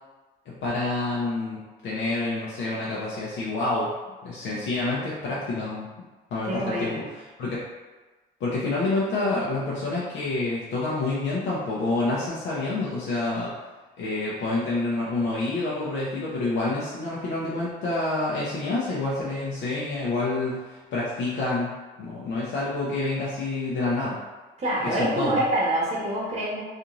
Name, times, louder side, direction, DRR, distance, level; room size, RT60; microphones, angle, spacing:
voice 1, 0.5-3.9 4.2-5.9 6.3-7.6 8.4-13.5 14.0-21.7 22.0-24.2 24.8-25.4, left 2 dB, 75° left, -7 dB, 0.6 m, -28 dB
voice 2, 6.4-7.0 24.6-26.6, right 1 dB, 35° right, -6 dB, 0.8 m, -26 dB
2.5 x 2.4 x 2.9 m, 1.2 s
cardioid pair, 90°, 20 cm